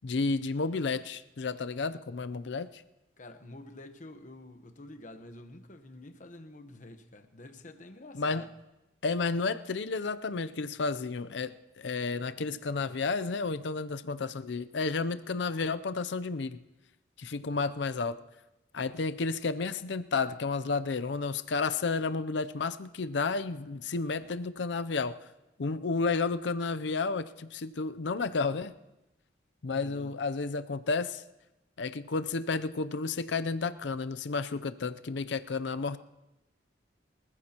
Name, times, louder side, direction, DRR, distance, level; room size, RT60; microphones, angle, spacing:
voice 1, 0.0-2.8 8.1-8.4 9.0-16.6 17.2-18.2 18.7-25.2 25.6-28.7 29.6-31.2 31.8-36.0, left 4 dB, 75° left, 12 dB, 0.6 m, -31 dB
voice 2, 3.2-8.5 29.7-30.1, left 2 dB, 45° left, 6 dB, 1.1 m, -48 dB
24.5 x 14.5 x 3.0 m, 0.98 s
head